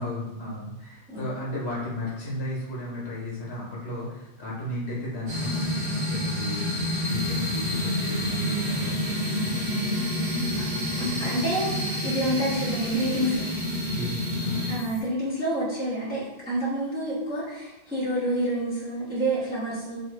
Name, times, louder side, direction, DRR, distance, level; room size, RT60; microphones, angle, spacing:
voice 1, 0.0-9.6 13.9-14.8, left 1 dB, 70° left, -5 dB, 1.1 m, -34 dB
sound 1, 5.3-14.7, left 1 dB, 75° right, 1.3 m, -28 dB
sound 2, 7.0-15.0, left 1 dB, 30° left, 1.0 m, -49 dB
voice 2, 11.0-13.5 14.7-20.0, right 1 dB, 10° right, -10 dB, 0.8 m, -28 dB
2.8 x 2.5 x 3.0 m, 1.0 s
omnidirectional pair, 1.1 m